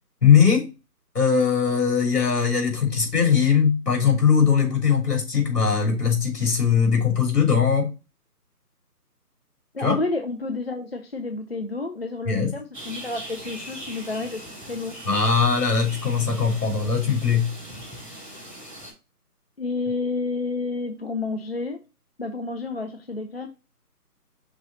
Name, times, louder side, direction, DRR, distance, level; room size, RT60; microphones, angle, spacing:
voice 1, 0.2-0.7 1.1-7.9 9.8-10.0 12.3-12.5 15.1-17.5, left 6 dB, 70° left, 3.2 m, -20 dB
voice 2, 9.7-14.9 19.6-21.8 22.2-23.5, left 3 dB, 40° left, 0.5 m, -30 dB
sound 1, 12.7-18.9, right 1 dB, 5° left, 2.7 m, -40 dB
6.1 x 4.0 x 3.9 m
figure-of-eight pair, 160°, 47 cm